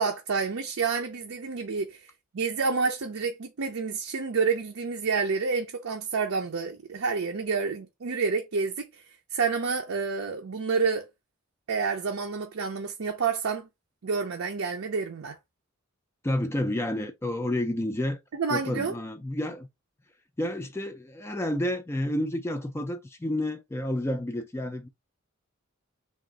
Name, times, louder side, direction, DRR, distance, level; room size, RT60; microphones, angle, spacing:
voice 1, 0.0-2.1 2.3-9.0 9.3-11.1 11.7-13.7 14.0-15.4 18.3-18.9, right 5 dB, 70° right, 0.5 m, -29 dB
voice 2, 16.2-18.2 18.5-19.7 20.4-24.9, left 1 dB, 10° left, 0.3 m, -30 dB
3.5 x 2.4 x 3.8 m
head